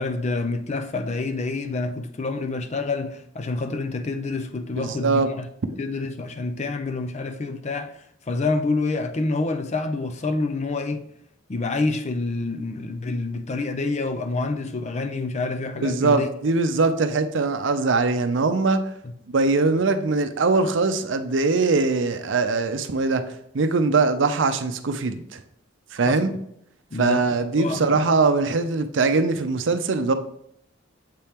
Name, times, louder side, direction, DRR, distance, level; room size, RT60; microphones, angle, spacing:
voice 1, 0.0-5.5 5.8-11.0 11.5-16.3 19.0-19.1 26.0-26.2 26.9-27.3 27.6-28.1, left 3 dB, 35° left, 0.5 m, -27 dB
voice 2, 4.8-5.3 15.8-18.8 19.3-23.2 23.5-25.4 25.9-26.3 27.0-30.1, right 3 dB, 65° right, 0.5 m, -21 dB
7.5 x 4.3 x 3.5 m
head